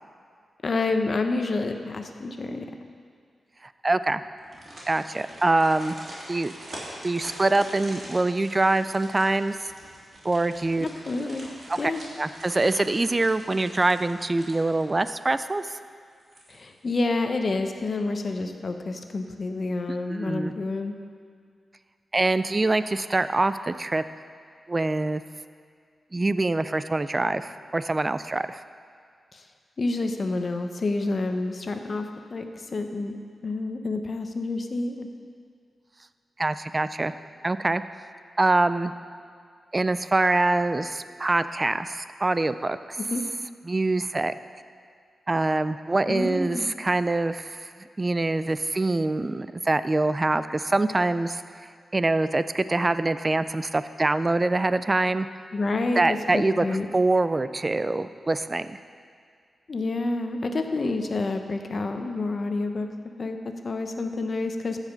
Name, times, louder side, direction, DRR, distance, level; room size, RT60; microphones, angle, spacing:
voice 1, 0.6-2.7 10.8-11.5 11.8-12.0 16.5-20.9 29.3-29.4 29.8-33.2 33.4-35.1 43.1-43.2 46.1-46.7 55.5-56.9 59.7-62.9 63.2-63.4 63.6-64.8, left 3 dB, 50° left, 6 dB, 0.8 m, -28 dB
voice 2, 3.8-4.2 4.9-5.9 6.3-6.5 7.0-9.7 10.2-10.9 11.7-11.9 12.2-15.8 19.9-20.5 22.1-24.0 24.7-25.2 26.1-28.6 36.4-37.1 37.4-37.8 38.4-38.9 39.7-43.0 43.7-44.3 45.3-47.7 48.0-51.4 51.9-55.3 56.0-56.6 56.9-58.8, right 2 dB, 30° right, 13 dB, 0.4 m, -24 dB
sound 1, 4.4-15.3 15.7-15.8 16.2-16.9 17.2-17.3, right 1 dB, 45° right, 2.7 m, -44 dB
14.0 x 5.0 x 5.3 m, 2.2 s
cardioid pair, 75°, 0 cm